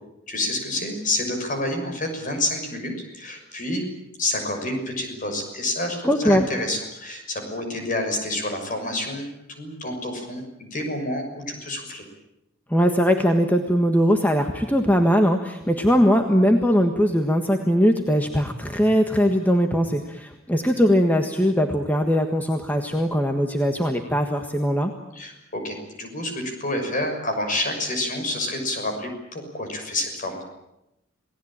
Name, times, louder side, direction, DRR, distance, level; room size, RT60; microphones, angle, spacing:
voice 1, 0.3-3.8 4.2-10.4 10.7-12.0 25.1-30.4, left 1 dB, 40° left, 4 dB, 6.4 m, -28 dB
voice 2, 6.0-6.4 12.7-24.9, equal, 10° left, 4 dB, 1.5 m, -20 dB
28.0 x 19.0 x 8.9 m, 0.89 s
head